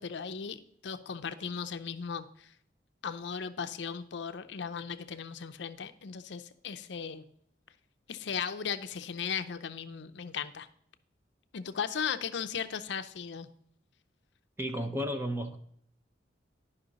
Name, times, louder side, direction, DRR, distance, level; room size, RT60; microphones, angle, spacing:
voice 1, 0.0-2.5 3.0-7.2 8.1-10.7 11.5-13.5, left 6 dB, 65° left, 10 dB, 0.5 m, -37 dB
voice 2, 14.6-15.6, equal, 10° right, 6 dB, 0.6 m, -33 dB
11.0 x 5.5 x 4.0 m, 0.65 s
head